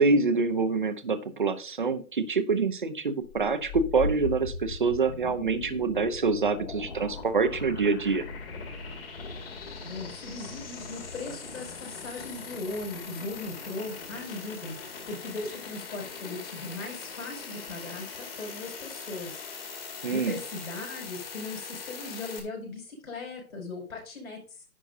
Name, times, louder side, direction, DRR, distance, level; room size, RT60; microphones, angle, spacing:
voice 1, 0.0-8.2 20.0-20.3, right 4 dB, 35° right, 11 dB, 0.8 m, -26 dB
sound 1, 3.2-22.4, left 4 dB, 40° left, 2.1 m, -40 dB
voice 2, 9.8-14.8 15.1-24.6, left 3 dB, 60° left, 0 dB, 5.1 m, -39 dB
11.0 x 8.8 x 2.7 m, 0.38 s
hypercardioid pair, 175°, 45 cm